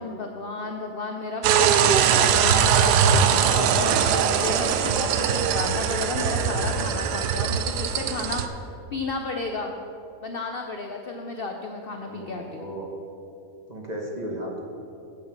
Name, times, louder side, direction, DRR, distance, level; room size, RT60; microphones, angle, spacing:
voice 1, 0.0-8.4 8.9-9.8 10.2-12.7, left 3 dB, 65° left, 3 dB, 0.5 m, -33 dB
sound 1, 1.4-8.5, right 7 dB, 80° right, 1.2 m, -21 dB
voice 2, 12.1-12.9 13.7-14.6, right 1 dB, 30° right, -1 dB, 1.0 m, -35 dB
8.7 x 7.2 x 5.9 m, 2.8 s
omnidirectional pair, 1.7 m